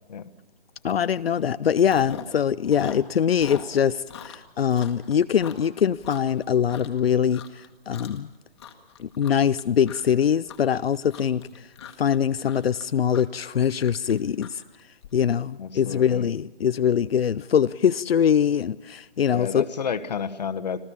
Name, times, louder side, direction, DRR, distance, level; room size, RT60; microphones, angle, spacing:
voice 1, 0.8-8.3 9.0-11.6 12.0-14.6 15.1-19.6, left 8 dB, 80° left, 15 dB, 0.6 m, -23 dB
Chewing mastication, 0.9-1.1 1.4-2.4 2.6-7.0 7.3-7.7 7.9-8.3 8.6-15.1, left 7 dB, 25° left, 1.5 m, -42 dB
voice 2, 15.6-16.3 19.3-20.8, left 7 dB, 45° left, 12 dB, 1.2 m, -31 dB
26.5 x 15.0 x 7.1 m, 1.2 s
hypercardioid pair, 165°, 30 cm